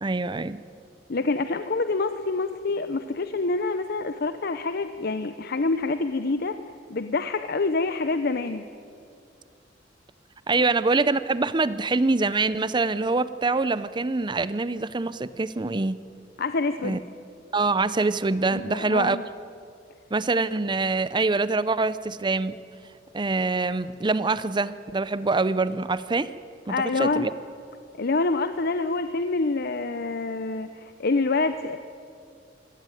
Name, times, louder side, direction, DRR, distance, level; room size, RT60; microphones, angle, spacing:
voice 1, 0.0-0.6 10.5-16.0 16.8-17.0 17.5-19.2 20.1-22.5 23.1-26.3 26.7-27.3, right 3 dB, 25° right, 15 dB, 0.6 m, -25 dB
voice 2, 1.1-6.6 6.9-8.6 16.4-17.0 18.5-19.2 26.7-27.3 28.0-31.8, left 3 dB, 60° left, 10 dB, 0.7 m, -26 dB
24.0 x 17.0 x 9.1 m, 2.4 s
head